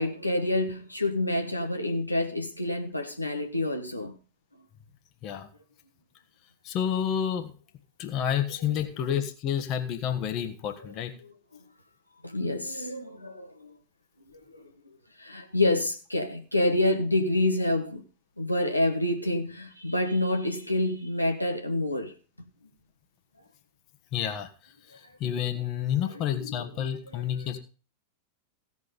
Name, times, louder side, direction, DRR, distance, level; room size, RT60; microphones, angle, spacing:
voice 1, 0.0-4.1 8.6-8.9 10.6-10.9 11.2-11.3 12.2-13.7 14.5-14.7 15.2-18.0 18.4-22.5 26.1-27.6, left 1 dB, 85° left, 1.4 m, -28 dB
voice 2, 6.6-7.5 8.0-11.1 24.1-24.5 25.2-27.6, left 9 dB, 40° left, 1.5 m, -29 dB
16.0 x 6.3 x 5.2 m
figure-of-eight pair, 90°, 0 cm